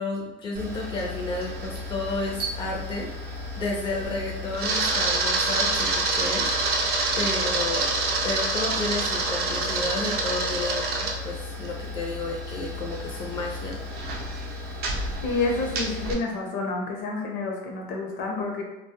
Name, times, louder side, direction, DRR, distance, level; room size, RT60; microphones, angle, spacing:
voice 1, 0.0-6.5 7.2-7.9 8.2-10.9 11.2-13.8, left 2 dB, 25° left, -1 dB, 0.5 m, -31 dB
Camera, 0.6-16.1, right 2 dB, 50° right, 0.5 m, -28 dB
voice 2, 15.2-18.6, left 3 dB, 65° left, 1 dB, 0.7 m, -29 dB
2.2 x 2.0 x 2.7 m, 1.0 s
cardioid pair, 125°, 21 cm